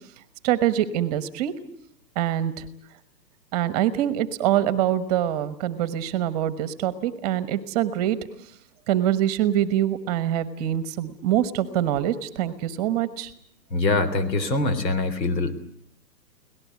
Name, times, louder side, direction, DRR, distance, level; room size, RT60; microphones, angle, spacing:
voice 1, 0.4-1.5 2.2-2.7 3.5-8.2 8.9-13.3, right 11 dB, 25° right, 14 dB, 1.2 m, -24 dB
voice 2, 13.7-15.5, left 3 dB, 80° left, 12 dB, 3.7 m, -23 dB
24.5 x 18.5 x 9.4 m, 0.68 s
hypercardioid pair, 160°, 50 cm